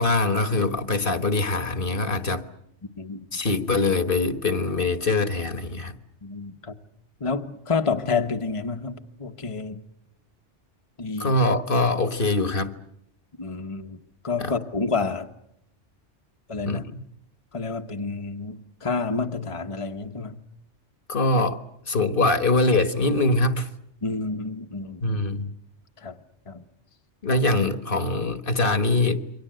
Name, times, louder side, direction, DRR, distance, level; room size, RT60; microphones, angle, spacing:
voice 1, 0.0-2.4 3.3-6.0 11.2-12.8 14.4-14.6 16.6-17.0 21.1-21.6 21.9-23.7 25.0-25.5 27.2-29.2, left 2 dB, 50° left, 1.5 m, -23 dB
voice 2, 6.2-6.7 7.2-9.8 11.0-11.3 13.4-14.0 14.2-15.3 16.5-16.8 17.5-20.4 24.0-25.0 26.0-26.2 26.5-26.6, left 4 dB, 25° left, 1.2 m, -29 dB
28.0 x 24.0 x 7.8 m
omnidirectional pair, 1.2 m